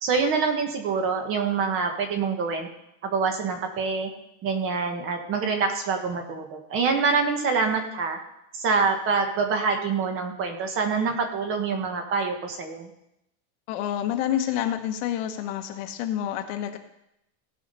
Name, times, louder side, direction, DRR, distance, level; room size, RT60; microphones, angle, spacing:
voice 1, 0.0-2.7 3.0-4.1 4.4-8.2 8.5-12.9, right 5 dB, 30° right, 5 dB, 1.3 m, -26 dB
voice 2, 13.7-16.8, left 11 dB, 50° left, 6 dB, 1.2 m, -28 dB
16.5 x 5.8 x 5.4 m, 0.83 s
supercardioid pair, 170°, 42 cm